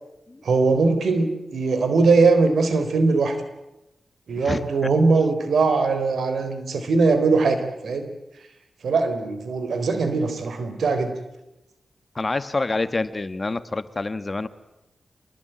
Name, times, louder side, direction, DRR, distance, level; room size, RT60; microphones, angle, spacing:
voice 1, 0.4-3.4 4.3-8.1 8.8-11.1, right 4 dB, 85° right, 9 dB, 3.7 m, -21 dB
voice 2, 4.4-4.9 12.2-14.5, left 3 dB, 35° left, 12 dB, 1.6 m, -27 dB
26.5 x 21.0 x 8.9 m, 0.93 s
cardioid pair, 65°, 0 cm